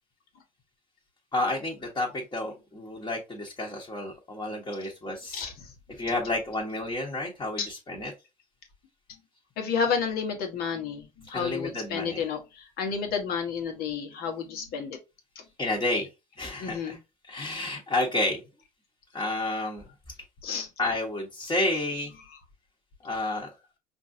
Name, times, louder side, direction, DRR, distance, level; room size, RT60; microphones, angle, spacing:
voice 1, 1.3-5.4 6.0-8.1 11.3-12.2 15.6-16.1 16.4-17.0 17.3-18.4 19.1-19.9 20.8-22.1 23.0-23.5, left 2 dB, 20° left, 1.4 m, -30 dB
voice 2, 5.3-5.7 7.6-7.7 9.6-15.0 16.6-17.0 20.4-20.7, left 6 dB, 60° left, 1.3 m, -31 dB
5.2 x 2.6 x 2.7 m
hypercardioid pair, 60°, 18 cm